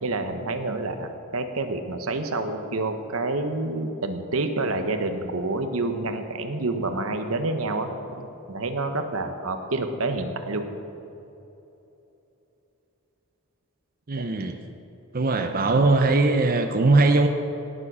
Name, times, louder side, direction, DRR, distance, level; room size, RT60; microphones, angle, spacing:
voice 1, 0.0-10.6 14.1-14.3, right 2 dB, 80° right, 7 dB, 1.1 m, -28 dB
voice 2, 14.1-14.6 15.1-17.3, right 3 dB, 45° right, 5 dB, 0.7 m, -20 dB
18.0 x 7.6 x 6.2 m, 3.0 s
head